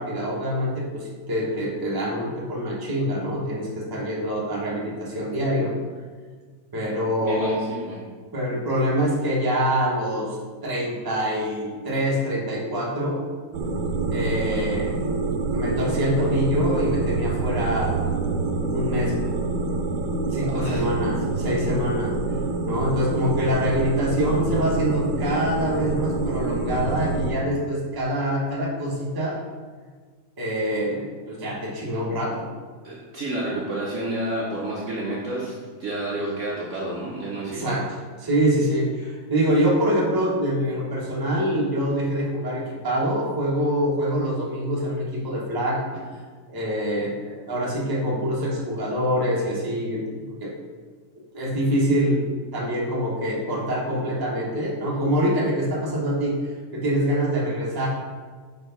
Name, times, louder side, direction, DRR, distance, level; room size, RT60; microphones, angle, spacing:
voice 1, 0.0-5.7 6.7-7.6 8.3-10.4 10.6-13.2 14.1-15.0 15.3-18.0 18.7-19.2 20.3-22.1 22.7-29.4 30.4-32.5 37.5-37.8 38.2-46.0 46.5-50.5 51.1-57.9, equal, 20° right, -4 dB, 0.6 m, -25 dB
voice 2, 7.2-8.1 20.4-20.9 32.8-37.8, right 1 dB, 85° right, -4 dB, 0.6 m, -30 dB
sound 1, 13.5-27.3, right 3 dB, 70° right, 1.1 m, -26 dB
4.9 x 4.5 x 5.1 m, 1.5 s
omnidirectional pair, 2.4 m